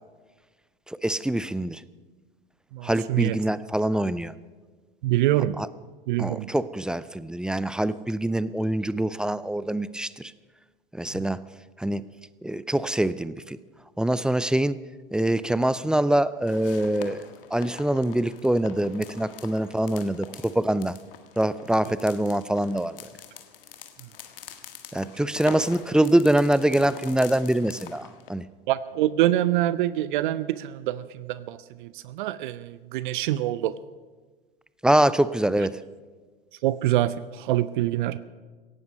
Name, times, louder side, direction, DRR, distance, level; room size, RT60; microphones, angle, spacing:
voice 1, 0.9-1.8 2.8-4.3 5.6-5.7 6.2-10.3 11.0-11.4 11.8-12.0 12.4-13.6 14.0-14.8 15.1-17.2 17.5-21.0 21.4-23.0 24.9-28.4 34.8-35.8, right 1 dB, 5° right, 17 dB, 0.4 m, -24 dB
voice 2, 2.7-3.4 5.0-5.6 6.1-6.5 28.7-33.7 36.6-38.2, right 14 dB, 55° right, 17 dB, 0.6 m, -25 dB
sound 1, 16.5-28.3, left 7 dB, 65° left, 1.7 m, -44 dB
18.0 x 15.5 x 5.3 m, 1.4 s
figure-of-eight pair, 85°, 29 cm